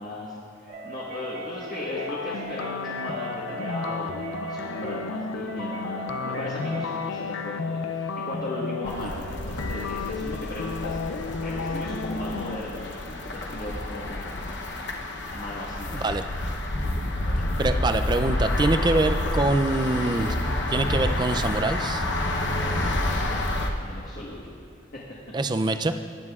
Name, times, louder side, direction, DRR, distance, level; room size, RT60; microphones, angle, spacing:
voice 1, 0.0-14.4 15.3-16.1 17.2-17.5 22.5-22.8 23.7-24.6 24.9-25.0, left 1 dB, 45° left, -6 dB, 1.3 m, -37 dB
sound 1, 0.7-7.2, right 2 dB, 80° right, 1.9 m, -39 dB
sound 2, 1.9-12.6, left 4 dB, 85° left, 0.4 m, -33 dB
sound 3, 8.9-23.7, left 1 dB, 60° left, 0.8 m, -29 dB
voice 2, 15.9-16.2 17.6-20.4 20.7-22.0 25.3-25.9, right 2 dB, 20° right, 8 dB, 0.3 m, -24 dB
17.0 x 9.6 x 2.4 m, 2.4 s
head